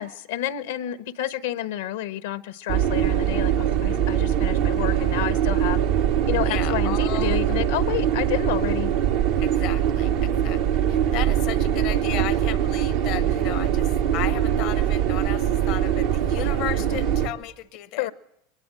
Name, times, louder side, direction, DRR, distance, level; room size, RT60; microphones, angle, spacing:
voice 1, 0.0-5.8 6.2-8.9 16.4-16.5 18.0-18.1, left 13 dB, 85° left, 14 dB, 1.1 m, -30 dB
sound 1, 2.7-17.3, right 10 dB, 80° right, 2.5 m, -22 dB
voice 2, 6.5-7.6 9.4-18.1, left 15 dB, 60° left, 15 dB, 0.9 m, -35 dB
23.0 x 20.0 x 8.8 m, 0.79 s
hypercardioid pair, 95°, 0 cm